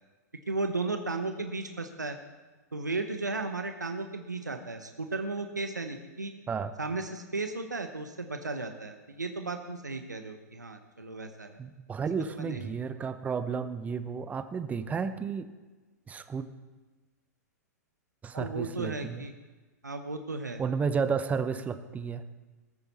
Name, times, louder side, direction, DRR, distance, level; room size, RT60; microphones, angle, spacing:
voice 1, 0.5-2.2 2.7-6.3 6.8-11.6 12.4-12.7 18.3-19.3 19.8-20.6, right 3 dB, 90° right, 7 dB, 0.9 m, -35 dB
voice 2, 11.6-15.5 16.1-16.5 18.2-19.2 20.6-22.3, right 5 dB, 15° right, 12 dB, 0.7 m, -32 dB
20.0 x 9.4 x 4.1 m, 1.2 s
figure-of-eight pair, 105°, 9 cm